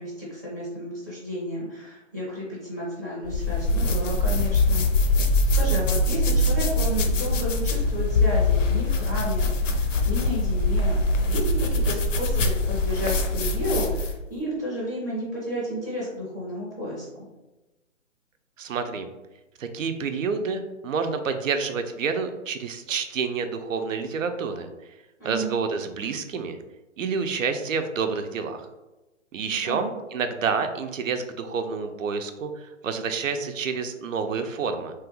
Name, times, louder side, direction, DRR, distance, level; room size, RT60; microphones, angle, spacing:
voice 1, 0.0-17.3 25.2-25.5 29.6-29.9, equal, 15° left, -7 dB, 0.5 m, -32 dB
sound 1, 3.3-14.2, left 2 dB, 70° left, 0.6 m, -23 dB
voice 2, 18.6-19.1 19.6-24.7 25.2-26.6 27.0-28.7 29.3-34.9, right 5 dB, 85° right, 8 dB, 0.5 m, -28 dB
3.0 x 2.3 x 3.0 m, 1.0 s
hypercardioid pair, 155°, 38 cm